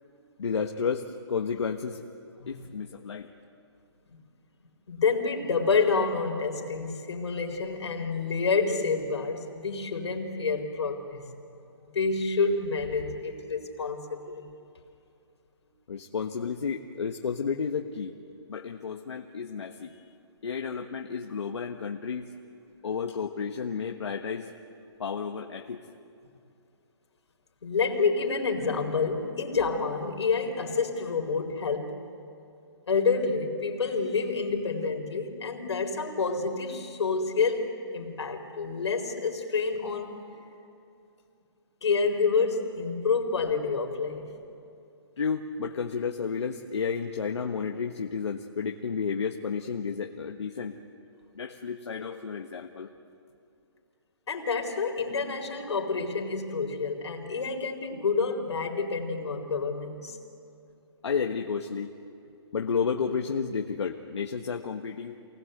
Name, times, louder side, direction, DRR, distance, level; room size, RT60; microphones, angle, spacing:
voice 1, 0.4-2.0 2.5-3.3 15.9-18.1 18.5-20.0 20.4-22.3 22.8-24.5 25.0-25.8 45.2-50.8 51.3-52.9 61.0-61.9 62.5-65.2, left 6 dB, 90° left, 2 dB, 1.5 m, -32 dB
voice 2, 2.4-2.7 4.1-4.2 4.9-11.3 11.8-14.5 27.6-32.0 32.9-37.7 37.9-40.1 41.8-44.3 54.3-60.2, left 4 dB, 75° left, 2 dB, 4.5 m, -28 dB
28.0 x 19.5 x 8.0 m, 2.7 s
hypercardioid pair, 175°, 14 cm